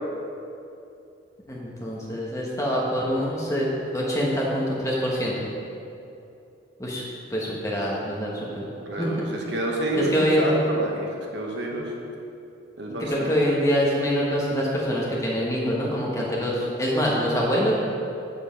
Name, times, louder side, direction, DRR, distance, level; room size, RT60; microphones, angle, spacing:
voice 1, 1.5-3.7 3.9-5.5 6.8-7.0 7.3-8.6 9.0-9.1 9.9-10.5 13.1-17.7, equal, 15° left, -4 dB, 1.2 m, -25 dB
voice 2, 8.8-11.9 12.8-13.3, right 1 dB, 60° right, -1 dB, 1.1 m, -28 dB
7.4 x 6.7 x 5.2 m, 2.7 s
head